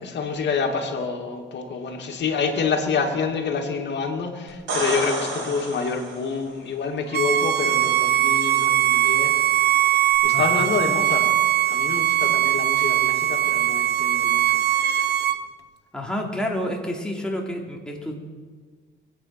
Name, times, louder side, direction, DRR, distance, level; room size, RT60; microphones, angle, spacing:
voice 1, 0.0-9.4 9.7-11.3 11.6-15.1, left 5 dB, 60° left, 3 dB, 2.5 m, -27 dB
sound 1, 4.5-6.4 10.1-10.2, right 2 dB, 85° right, 5.9 m, -29 dB
Bowed string instrument, 7.1-15.4, right 12 dB, 55° right, 0.9 m, -20 dB
voice 2, 10.3-10.7 15.9-18.1, left 1 dB, 5° left, -1 dB, 3.1 m, -29 dB
23.0 x 9.1 x 6.0 m, 1.5 s
cardioid pair, 90°, 20 cm